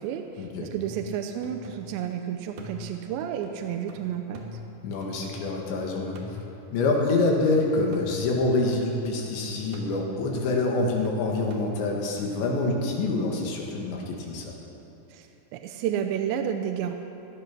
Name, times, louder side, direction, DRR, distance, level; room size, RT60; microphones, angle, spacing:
voice 1, 0.0-4.4 15.1-16.9, right 9 dB, 80° right, 5 dB, 2.8 m, -31 dB
sound 1, 0.8-2.1 2.6-5.7 6.1-9.3 9.7-12.4, equal, 60° right, 2.6 m, -44 dB
voice 2, 4.8-6.2 6.7-14.5, left 2 dB, 75° left, -1 dB, 4.0 m, -26 dB
17.0 x 12.0 x 6.0 m, 2.9 s
omnidirectional pair, 5.3 m